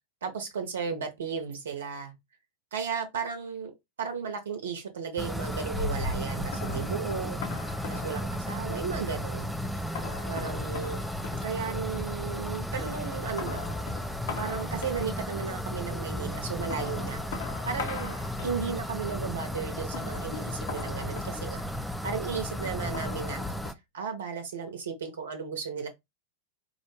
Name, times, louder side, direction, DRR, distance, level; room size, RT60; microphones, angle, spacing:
voice 1, 0.2-2.1 2.7-3.7 4.0-9.5 10.3-11.0 11.4-13.7 14.4-17.2 17.7-18.1 18.4-21.6 22.0-23.4 23.9-25.9, right 6 dB, 65° right, 0.7 m, -35 dB
sound 1, 5.2-23.7, equal, ahead, 0.4 m, -34 dB
sound 2, 5.7-12.4 12.8-15.5 16.3-19.0 19.8-22.0 22.7-23.7, left 5 dB, 55° left, 0.7 m, -41 dB
3.9 x 2.1 x 3.2 m
figure-of-eight pair, 90°, 0 cm